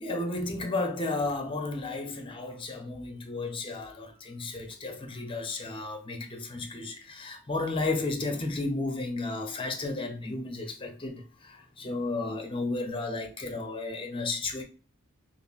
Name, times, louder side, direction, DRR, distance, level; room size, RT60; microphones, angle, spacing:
voice 1, 0.0-14.6, left 2 dB, 25° left, 0.6 m, -33 dB
5.3 x 2.0 x 2.3 m
head